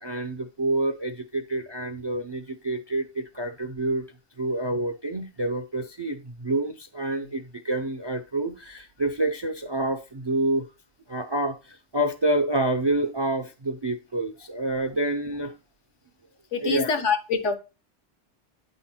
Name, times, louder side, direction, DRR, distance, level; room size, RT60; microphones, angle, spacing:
voice 1, 0.0-4.1 4.4-10.7 11.1-15.6 16.6-16.9, right 1 dB, 35° right, 8 dB, 0.4 m, -28 dB
voice 2, 16.5-17.5, left 6 dB, 75° left, 9 dB, 1.3 m, -25 dB
9.4 x 3.8 x 4.3 m, 0.30 s
omnidirectional pair, 1.3 m